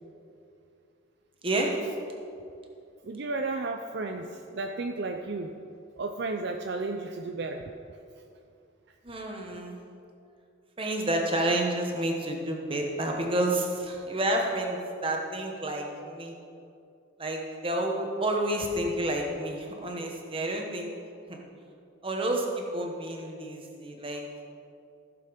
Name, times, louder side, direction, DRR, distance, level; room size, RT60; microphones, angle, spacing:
voice 1, 1.4-1.8 9.0-9.8 10.8-16.3 17.2-20.9 21.3-21.4 22.0-24.2, right 1 dB, 25° right, 1 dB, 1.2 m, -30 dB
voice 2, 3.0-5.5 6.0-7.6, right 3 dB, 55° right, 4 dB, 0.5 m, -33 dB
15.5 x 6.8 x 5.2 m, 2.5 s
head